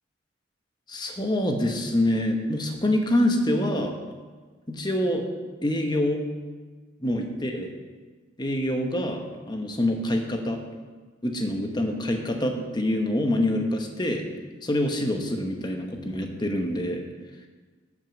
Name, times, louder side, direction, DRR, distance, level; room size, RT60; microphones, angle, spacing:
voice 1, 0.9-4.0 4.7-5.3 5.6-6.2 7.0-7.7 8.4-10.7 11.2-14.2 14.6-17.0, left 1 dB, 20° left, 3 dB, 1.1 m, -26 dB
9.9 x 6.2 x 7.2 m, 1.4 s
head